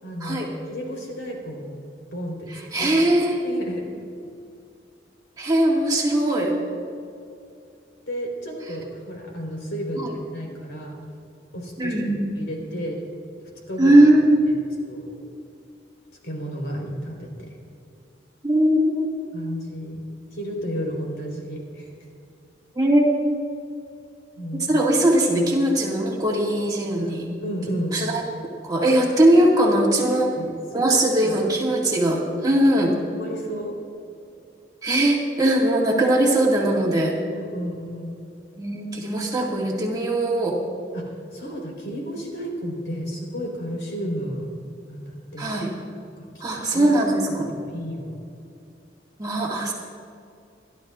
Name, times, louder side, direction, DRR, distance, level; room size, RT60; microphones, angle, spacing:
voice 1, 0.0-1.8 2.1-3.0 3.4-3.9 8.1-10.0 10.3-10.9 11.5-12.0 12.3-13.0 13.7-14.0 14.8-15.1 16.2-17.6 19.3-20.0 20.3-21.9 24.4-24.7 27.0-28.0 30.0-31.3 33.2-33.7 37.3-38.2 40.4-40.6 40.9-44.5 44.9-45.5 46.2-46.4 46.7-46.9 47.6-48.1, equal, 90° left, -1 dB, 4.0 m, -32 dB
voice 2, 2.7-3.4 5.4-6.6 10.0-10.1 11.8-12.2 13.8-14.3 18.4-19.2 22.8-23.1 24.5-27.3 27.9-30.3 30.7-32.9 34.8-37.1 38.6-40.6 45.4-45.7 46.4-47.5 49.2-49.7, right 1 dB, 20° right, -3 dB, 1.9 m, -20 dB
27.5 x 12.0 x 2.4 m, 2.5 s
head